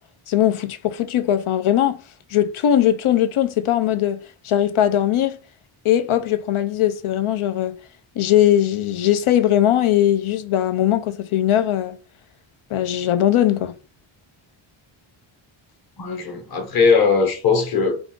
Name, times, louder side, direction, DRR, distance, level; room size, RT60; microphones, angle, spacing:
voice 1, 0.3-2.0 2.3-5.4 5.8-7.8 8.2-12.0 12.7-13.7, left 11 dB, 80° left, 0.7 m, -20 dB
voice 2, 16.0-18.0, left 5 dB, 45° left, 1.2 m, -19 dB
4.9 x 2.5 x 3.8 m
wide cardioid pair, 150°, 50 cm